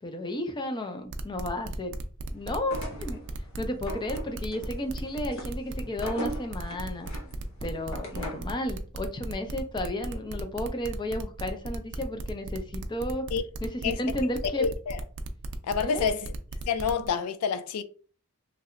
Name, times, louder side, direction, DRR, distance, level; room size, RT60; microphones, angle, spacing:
voice 1, 0.0-2.0 2.3-3.2 3.6-7.1 7.6-13.3 13.6-14.7 15.8-16.1, left 1 dB, 20° left, 0.4 m, -33 dB
sound 1, 1.1-17.1, right 3 dB, 55° right, 0.4 m, -37 dB
sound 2, 2.6-8.6, equal, 70° left, 0.9 m, -41 dB
voice 2, 14.6-15.0 15.7-16.3 16.7-17.8, left 6 dB, 90° left, 0.4 m, -28 dB
3.1 x 2.8 x 2.4 m
head